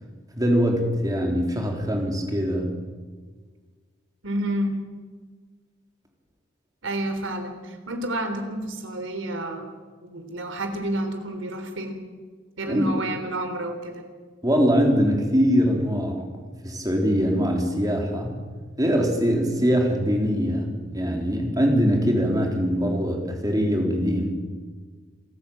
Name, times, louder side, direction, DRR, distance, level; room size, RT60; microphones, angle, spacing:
voice 1, 0.4-2.7 12.7-12.9 14.4-16.3 16.6-18.4 18.8-20.7 20.9-24.3, equal, 20° right, 1 dB, 3.8 m, -22 dB
voice 2, 4.2-4.8 6.8-9.7 10.0-12.0 12.6-14.0 19.6-19.7, right 1 dB, 75° right, 6 dB, 3.5 m, -30 dB
27.0 x 14.0 x 8.7 m, 1.5 s
head